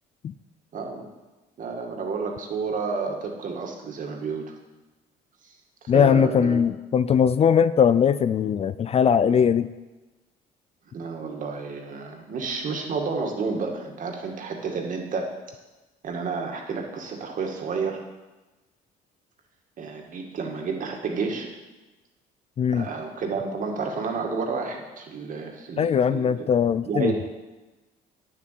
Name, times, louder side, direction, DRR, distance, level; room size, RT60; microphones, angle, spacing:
voice 1, 0.7-1.1 1.6-4.5 5.8-6.7 10.9-15.3 16.0-18.0 19.8-21.5 22.7-26.5 26.9-27.2, right 4 dB, 50° right, 2 dB, 2.2 m, -30 dB
voice 2, 5.9-9.7 22.6-22.9 25.8-27.1, left 7 dB, 35° left, 14 dB, 0.4 m, -20 dB
9.3 x 7.2 x 7.7 m, 1.1 s
cardioid pair, 110°, 17 cm